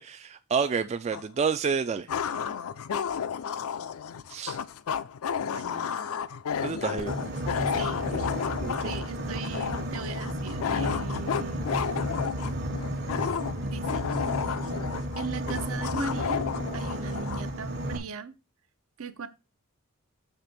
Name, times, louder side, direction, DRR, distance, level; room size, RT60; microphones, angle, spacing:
voice 1, 0.0-2.1 4.3-4.6 6.6-7.1 8.1-8.2 8.6-8.9, right 6 dB, 30° right, 0.3 m, -29 dB
sound 1, 1.1-1.2 2.1-17.5, left 7 dB, 70° left, 0.4 m, -32 dB
voice 2, 5.4-6.2 7.7-8.1 8.8-11.7 13.6-14.1 15.1-16.4 16.7-18.3 19.0-19.3, right 5 dB, 65° right, 0.7 m, -38 dB
Boat Water vehicle, 7.0-18.0, right 1 dB, 50° right, 1.2 m, -33 dB
6.7 x 3.4 x 5.8 m
head